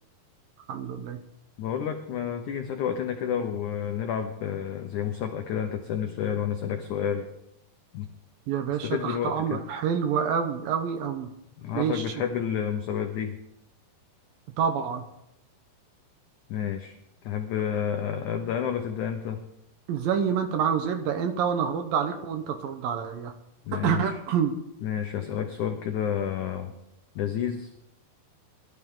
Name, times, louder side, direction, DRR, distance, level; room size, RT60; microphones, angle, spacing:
voice 1, 0.7-1.2 8.5-11.3 11.7-12.0 14.6-15.0 19.9-23.3 23.7-24.6, right 7 dB, 70° right, 7 dB, 2.5 m, -27 dB
voice 2, 1.6-7.3 7.9-8.1 8.8-9.6 11.6-13.4 16.5-17.0 17.2-19.4 23.6-24.2 24.8-26.7 27.1-27.7, left 8 dB, 85° left, 5 dB, 1.7 m, -30 dB
21.5 x 12.5 x 3.8 m, 0.83 s
omnidirectional pair, 4.8 m